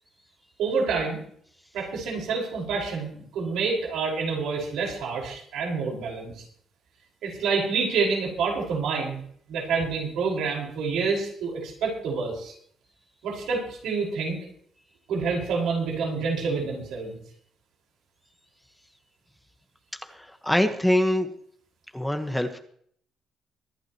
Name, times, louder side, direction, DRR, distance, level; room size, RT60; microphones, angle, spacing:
voice 1, 0.6-1.2 1.7-6.4 7.2-9.2 9.5-12.5 13.2-14.4 15.1-17.2, right 4 dB, 85° right, -1 dB, 5.4 m, -28 dB
voice 2, 20.0-21.3 21.9-22.6, left 1 dB, 5° left, 5 dB, 1.4 m, -24 dB
24.0 x 11.0 x 3.1 m, 0.62 s
cardioid pair, 90°, 0 cm